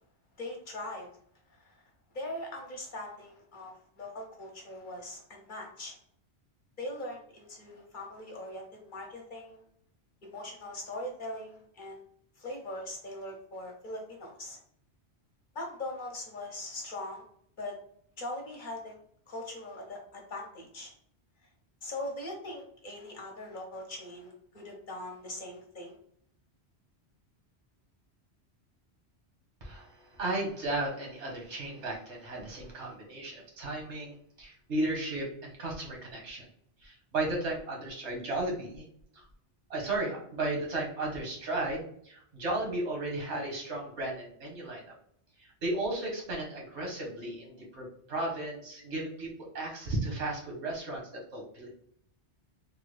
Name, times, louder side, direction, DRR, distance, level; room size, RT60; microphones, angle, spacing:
voice 1, 0.4-1.1 1.5-1.8 2.1-6.0 6.8-9.6 10.2-12.0 12.4-14.6 15.5-17.2 17.6-17.7 18.2-18.9 19.3-20.9 21.8-26.0, left 1 dB, 50° left, 1 dB, 0.9 m, -41 dB
voice 2, 29.6-36.5 36.8-38.9 39.1-39.2 39.7-44.8 45.4-49.3 49.5-51.9, right 2 dB, 85° right, 0 dB, 1.4 m, -35 dB
3.6 x 2.2 x 3.1 m, 0.65 s
omnidirectional pair, 1.1 m